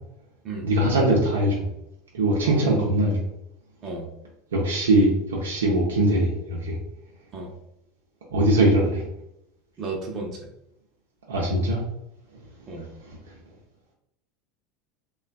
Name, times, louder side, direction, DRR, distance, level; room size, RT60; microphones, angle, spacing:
voice 1, 0.6-1.6 2.1-3.2 4.5-6.8 8.3-9.0 11.3-11.8 13.0-13.2, right 1 dB, 85° right, -4 dB, 0.6 m, -21 dB
voice 2, 2.4-2.9 3.8-4.1 7.3-7.5 9.8-10.4 12.7-12.9, right 3 dB, 40° right, 0 dB, 0.6 m, -33 dB
3.2 x 2.3 x 2.2 m, 0.83 s
hypercardioid pair, 85°, 0 cm